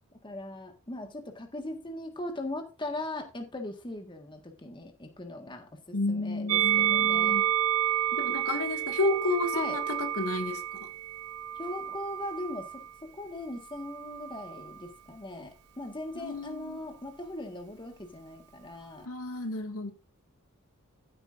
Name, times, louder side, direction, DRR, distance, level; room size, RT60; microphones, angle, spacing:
voice 1, 0.2-7.5 9.5-9.8 11.5-19.1, left 1 dB, 20° left, 1.6 m, -39 dB
voice 2, 5.9-7.5 8.1-10.9 16.1-16.8 19.1-19.9, left 2 dB, 75° left, 1.9 m, -31 dB
Musical instrument, 6.5-12.9 13.7-14.7, right 11 dB, 85° right, 0.6 m, -30 dB
14.0 x 9.0 x 2.5 m
head